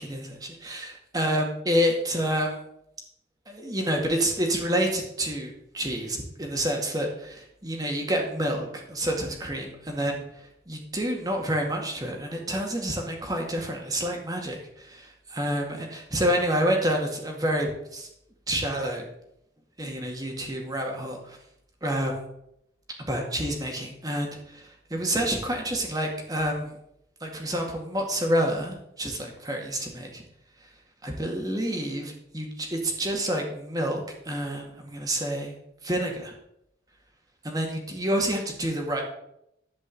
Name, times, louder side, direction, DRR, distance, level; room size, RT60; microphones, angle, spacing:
voice 1, 0.0-2.6 3.5-10.2 10.7-18.1 18.5-19.0 19.8-21.4 21.8-22.2 23.1-26.7 27.2-30.2 31.0-35.5 35.8-36.3 37.4-39.0, equal, 20° right, 1 dB, 2.1 m, -28 dB
12.0 x 5.2 x 7.9 m, 0.78 s
head